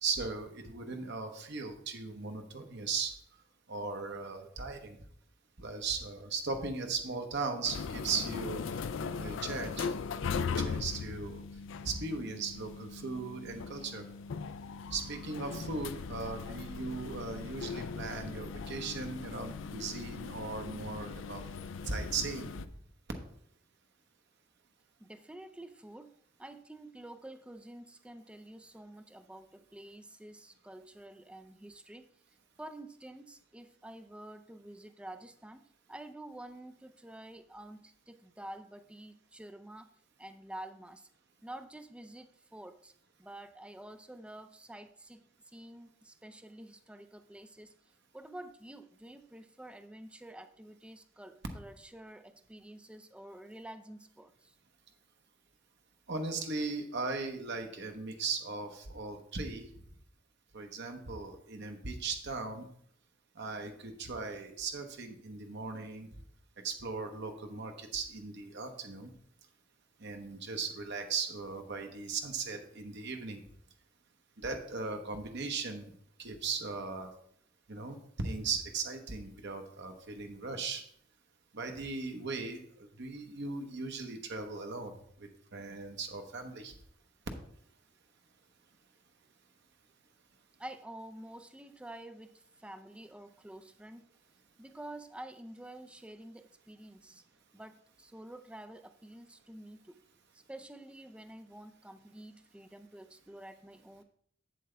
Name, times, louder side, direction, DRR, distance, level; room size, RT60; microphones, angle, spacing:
voice 1, 0.0-3.1 3.7-5.0 5.6-8.8 9.2-9.9 10.2-11.4 11.8-14.1 14.9-21.4 21.9-22.5 56.1-59.7 60.5-62.7 63.4-66.1 66.6-69.1 70.0-73.4 74.4-75.9 76.2-77.1 77.7-80.8 81.5-84.9 85.2-86.7, right 4 dB, 60° right, 5 dB, 1.0 m, -38 dB
sound 1, 7.6-22.7, left 5 dB, 65° left, 0.4 m, -39 dB
voice 2, 25.0-32.1 32.6-35.6 35.9-39.9 40.2-41.1 41.4-42.9 43.2-47.8 48.1-54.5 90.6-94.1 94.6-97.2 97.5-100.0 100.5-104.0, right 1 dB, 5° right, 10 dB, 0.4 m, -49 dB
7.9 x 7.6 x 3.3 m, 0.65 s
head